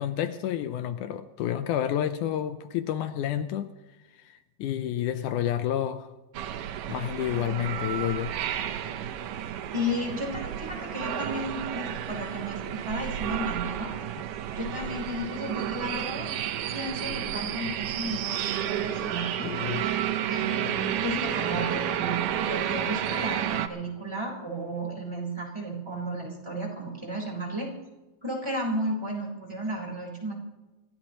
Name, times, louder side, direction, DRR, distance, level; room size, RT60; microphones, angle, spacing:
voice 1, 0.0-3.7 4.2-6.1 6.9-8.3 19.4-19.8, left 11 dB, 80° left, 2.2 m, -29 dB
sound 1, 6.3-23.7, right 10 dB, 85° right, 2.5 m, -31 dB
voice 2, 9.7-13.9 14.6-19.5 20.3-27.7 28.2-30.4, equal, 10° right, 4.0 m, -33 dB
28.0 x 14.5 x 3.0 m
omnidirectional pair, 3.7 m